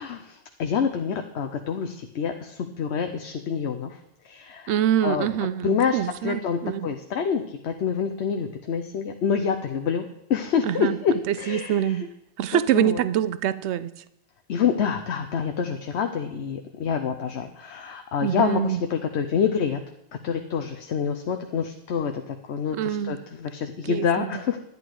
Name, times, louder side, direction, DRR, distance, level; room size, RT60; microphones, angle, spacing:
voice 1, 0.0-4.0 4.2-5.3 5.6-10.0 10.3-12.0 12.5-13.0 14.5-19.8 20.2-24.6, left 6 dB, 70° left, 6 dB, 1.0 m, -27 dB
voice 2, 4.7-6.9 10.6-11.0 11.3-12.0 12.4-13.9 18.2-18.8 22.7-23.2 23.8-24.3, right 10 dB, 75° right, 16 dB, 0.8 m, -25 dB
11.0 x 10.5 x 4.7 m, 0.78 s
omnidirectional pair, 1.2 m